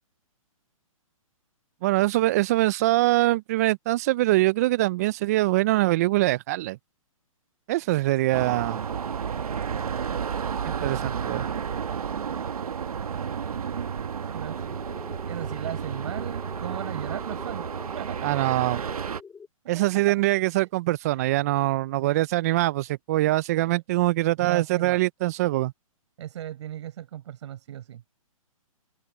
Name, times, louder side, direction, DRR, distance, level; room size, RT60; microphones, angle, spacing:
voice 1, 1.8-6.8 7.7-8.8 10.6-11.4 18.2-18.8 19.7-25.7, right 17 dB, 30° right, 0.4 m, -23 dB
sound 1, 8.3-19.2, right 7 dB, 85° right, 1.3 m, -31 dB
voice 2, 14.0-14.8 15.3-17.7 18.0-18.6 19.6-20.2 20.4-20.6 21.1-21.2 21.6-21.7 22.0-22.2 23.3-23.8 24.4-25.0 26.2-28.0, right 11 dB, 55° right, 5.9 m, -37 dB
sound 2, 14.5-19.5, left 5 dB, 10° left, 3.2 m, -46 dB
hypercardioid pair, 155°, 18 cm